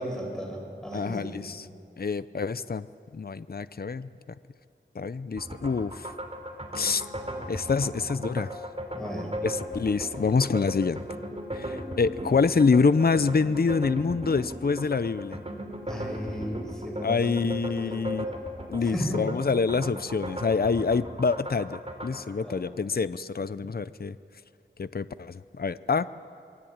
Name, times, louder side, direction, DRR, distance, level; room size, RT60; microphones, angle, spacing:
voice 1, 0.0-1.4 8.9-9.3 15.9-17.5 17.8-18.3 18.8-19.2 22.3-22.8, equal, 5° left, 0 dB, 7.7 m, -35 dB
voice 2, 0.9-1.7 2.0-2.9 3.1-4.1 4.9-6.1 6.7-7.0 7.5-8.5 9.4-11.1 11.5-15.4 17.0-18.3 18.7-24.2 24.8-26.1, left 4 dB, 50° left, 14 dB, 0.6 m, -26 dB
sound 1, 5.4-22.2, equal, 30° right, 3.6 m, -37 dB
28.0 x 23.0 x 8.8 m, 2.4 s
wide cardioid pair, 65°, 20 cm